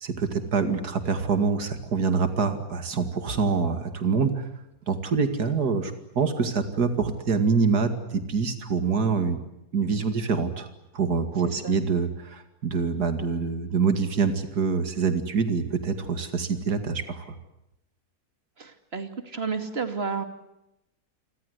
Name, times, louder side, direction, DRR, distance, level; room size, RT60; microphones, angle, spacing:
voice 1, 0.0-4.4 4.9-9.4 9.7-10.7 10.9-17.3, right 5 dB, 85° right, 8 dB, 2.7 m, -25 dB
voice 2, 11.4-11.8 18.6-20.2, right 5 dB, 40° right, 7 dB, 2.8 m, -31 dB
29.0 x 24.5 x 8.1 m, 0.88 s
omnidirectional pair, 1.6 m